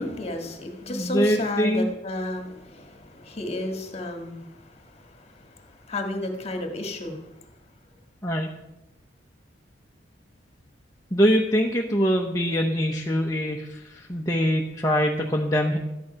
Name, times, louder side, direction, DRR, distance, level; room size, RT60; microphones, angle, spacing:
voice 1, 0.0-7.3, left 1 dB, 35° left, 4 dB, 1.8 m, -32 dB
voice 2, 0.9-1.9 8.2-8.5 11.1-15.8, equal, 15° left, -1 dB, 0.9 m, -23 dB
13.0 x 9.4 x 5.7 m, 0.93 s
head